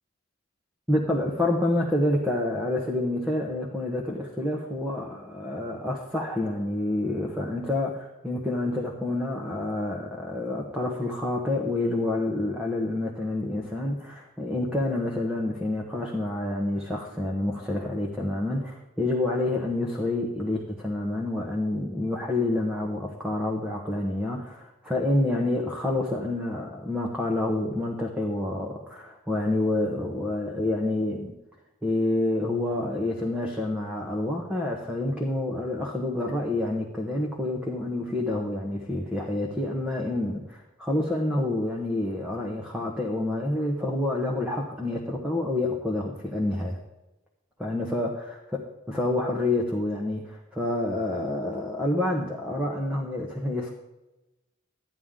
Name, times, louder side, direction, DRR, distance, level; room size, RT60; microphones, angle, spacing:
voice 1, 0.9-31.3 31.8-46.8 47.6-48.1 48.5-48.6 48.9-53.7, left 1 dB, 5° right, -1 dB, 1.1 m, -28 dB
13.0 x 10.5 x 3.7 m, 1.0 s
head